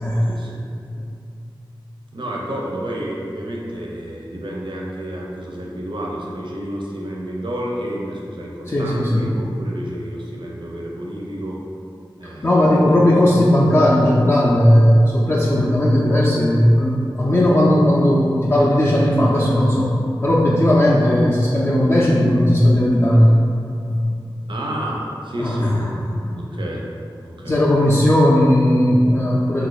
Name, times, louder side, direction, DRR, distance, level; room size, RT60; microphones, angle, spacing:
voice 1, 0.2-0.6 2.1-11.6 12.2-12.6 13.0-13.1 24.5-25.8 26.3-26.8 27.2-27.6, right 1 dB, 65° right, -3 dB, 0.6 m, -30 dB
voice 2, 8.7-9.3 12.4-19.9 20.2-23.4 23.8-24.0 25.4-25.8 27.5-29.7, left 1 dB, 30° left, -6 dB, 0.4 m, -16 dB
2.8 x 2.4 x 3.9 m, 2.5 s
wide cardioid pair, 50°, 9 cm